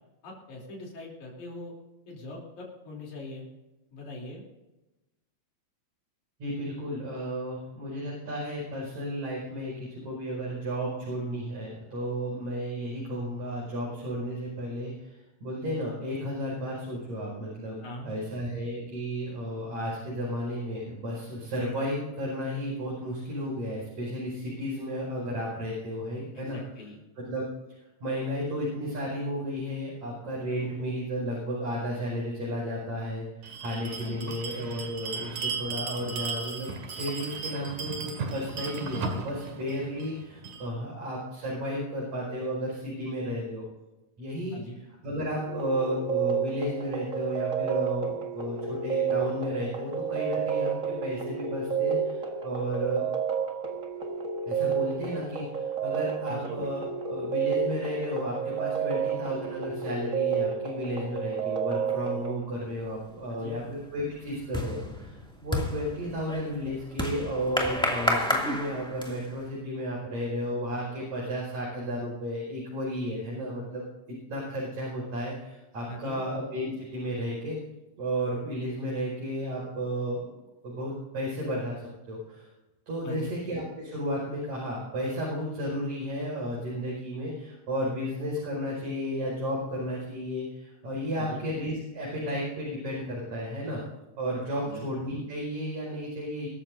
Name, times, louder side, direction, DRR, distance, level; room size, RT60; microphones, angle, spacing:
voice 1, 0.2-1.7 2.1-3.5 3.9-4.4 17.8-18.2 26.3-27.0 34.0-34.4 44.5-44.8 56.3-56.6 63.3-63.6 75.9-76.2 83.0-83.3 91.1-91.4 94.6-94.8, left 1 dB, 85° left, -3 dB, 4.7 m, -41 dB
voice 2, 6.4-26.6 27.2-27.4 28.0-33.3 33.6-43.6 44.2-44.6 45.0-53.0 54.5-65.1 65.4-73.8 74.3-77.6 78.0-80.4 80.6-82.5 82.9-93.8 94.2-96.5, equal, 75° right, -5 dB, 6.9 m, -33 dB
Bell, 33.4-40.7, right 4 dB, 90° right, 3.4 m, -36 dB
sound 1, 45.5-62.4, right 7 dB, 35° right, 1.6 m, -30 dB
sound 2, 62.9-63.3 63.6-69.4, left 1 dB, ahead, 2.0 m, -31 dB
24.0 x 13.5 x 2.7 m, 1.0 s
omnidirectional pair, 3.4 m